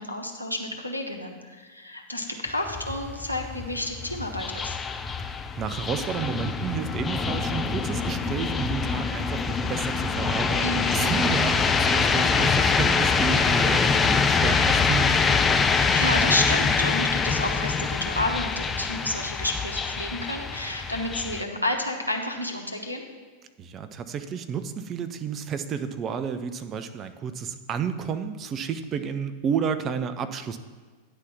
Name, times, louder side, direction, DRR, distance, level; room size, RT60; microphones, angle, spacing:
voice 1, 0.0-4.8 10.6-11.1 15.7-23.0, left 1 dB, 85° left, 2 dB, 1.0 m, -30 dB
sound 1, 2.5-21.4, left 5 dB, 20° left, 0.4 m, -24 dB
voice 2, 5.3-15.4 23.6-30.6, right 7 dB, 30° right, 9 dB, 0.5 m, -31 dB
9.7 x 4.1 x 7.2 m, 1.4 s
figure-of-eight pair, 90°, 0 cm